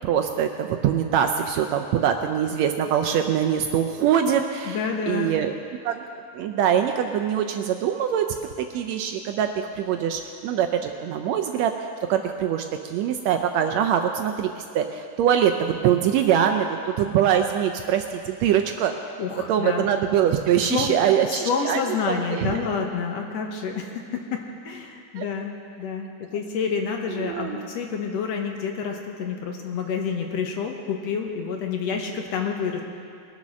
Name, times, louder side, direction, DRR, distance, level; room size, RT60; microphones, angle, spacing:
voice 1, 0.0-5.5 5.8-6.0 6.3-8.2 8.6-11.7 12.1-18.9 19.5-21.8 22.1-22.6 25.2-25.3 27.2-27.7, right 9 dB, 80° right, 5 dB, 1.6 m, -23 dB
voice 2, 4.7-5.3 19.2-19.9 20.6-21.0 21.3-32.8, left 6 dB, 70° left, 2 dB, 1.9 m, -28 dB
21.0 x 7.4 x 6.3 m, 2.4 s
omnidirectional pair, 3.5 m